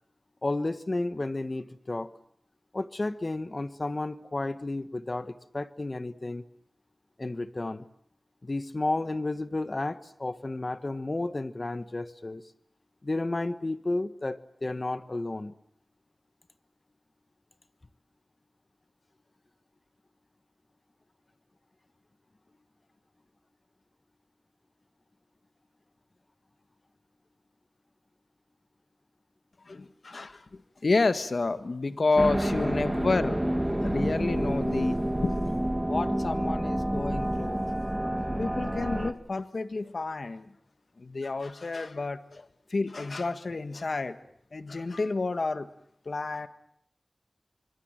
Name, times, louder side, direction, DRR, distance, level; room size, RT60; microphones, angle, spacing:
voice 1, 0.4-2.1 2.7-6.4 7.2-7.9 8.4-12.4 13.0-15.5, left 2 dB, 45° left, 13 dB, 1.4 m, -32 dB
voice 2, 29.7-33.4 33.8-35.0 35.2-35.4 35.9-37.7 38.4-40.5 41.0-44.2 44.5-45.7 46.0-46.5, left 3 dB, 70° left, 11 dB, 1.7 m, -30 dB
sound 1, 32.2-39.1, right 1 dB, 10° right, 2.4 m, -28 dB
25.5 x 25.5 x 8.9 m, 0.67 s
wide cardioid pair, 80°, 0 cm